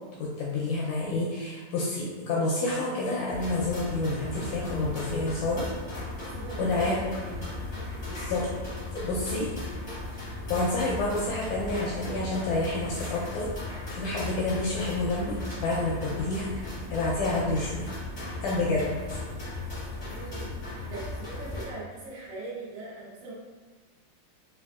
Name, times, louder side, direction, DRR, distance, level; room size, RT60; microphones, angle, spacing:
voice 1, 0.2-5.7 6.6-7.0 8.1-8.5 8.9-9.5 10.2-13.5 13.9-16.6 16.9-17.8 18.4-18.9, left 2 dB, 80° left, -5 dB, 1.8 m, -29 dB
sound 1, 3.3-21.6, left 2 dB, 60° left, 0.6 m, -37 dB
voice 2, 6.2-8.0 9.0-9.5 20.0-23.3, right 2 dB, 80° right, -9 dB, 2.4 m, -42 dB
5.4 x 2.3 x 2.3 m, 1.4 s
omnidirectional pair, 3.8 m